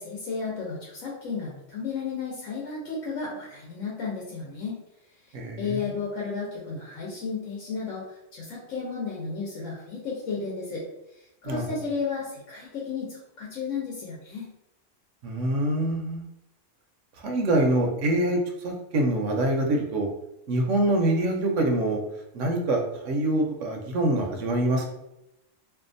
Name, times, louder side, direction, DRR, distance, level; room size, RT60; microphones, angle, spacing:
voice 1, 0.0-4.8 5.5-10.8 11.2-14.5, left 5 dB, 85° left, -4 dB, 1.0 m, -33 dB
voice 2, 5.3-5.8 11.4-11.6 15.2-16.2 17.2-20.1 20.5-22.0 22.3-24.9, right 1 dB, 75° right, 1 dB, 0.9 m, -25 dB
2.6 x 2.3 x 2.5 m, 0.85 s
omnidirectional pair, 1.3 m